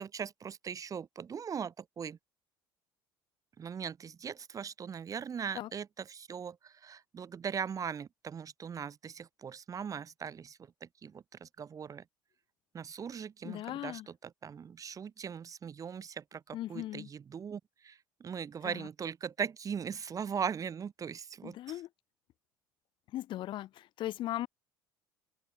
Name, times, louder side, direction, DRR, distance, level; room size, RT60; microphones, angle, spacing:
voice 1, 0.0-2.2 3.6-12.0 12.7-21.6, right 7 dB, 30° right, 1.5 m, -40 dB
voice 2, 13.4-14.1 16.5-17.1 18.6-18.9 21.4-21.9 23.1-24.5, left 14 dB, 45° left, 1.2 m, -38 dB
open air
figure-of-eight pair, 60°, 11 cm